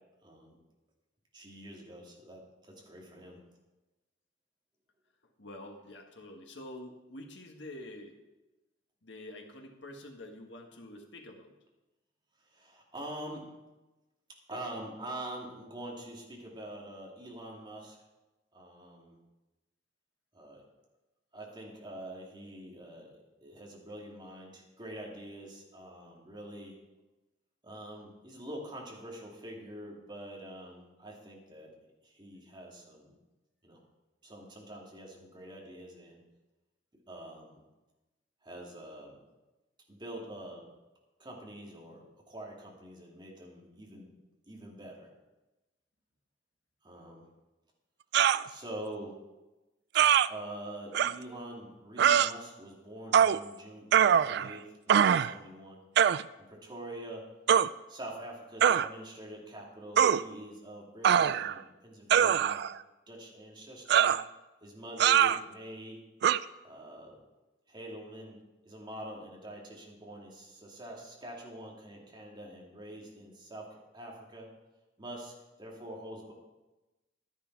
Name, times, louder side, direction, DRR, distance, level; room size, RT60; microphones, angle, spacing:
voice 1, 0.2-0.6 1.3-3.4 12.4-13.4 14.5-18.0 18.5-19.1 20.3-20.6 21.3-26.8 27.6-31.7 32.0-33.1 33.6-33.8 34.2-36.2 37.1-37.6 38.4-39.2 39.9-40.7 41.2-44.1 44.5-45.1 46.8-47.3 48.5-49.2 50.3-53.9 54.1-55.8 56.4-57.2 57.9-62.6 63.1-64.1 64.6-66.0 66.6-67.2 67.7-68.4 68.6-74.5 75.0-75.3 75.6-76.3, right 1 dB, 25° right, -2 dB, 2.6 m, -45 dB
voice 2, 5.4-8.2 9.0-11.5, left 1 dB, 70° left, 2 dB, 1.7 m, -47 dB
sound 1, 48.1-48.4 49.9-50.3 50.9-51.1 52.0-52.3 53.1-53.4 53.9-54.5 54.9-55.3 56.0-56.2 57.5-57.7 58.6-58.9 60.0-60.2 61.0-61.6 62.1-62.7 63.9-64.2 65.0-65.4 66.2-66.4, right 9 dB, 60° right, 0.3 m, -23 dB
11.5 x 10.0 x 4.7 m, 1.1 s
head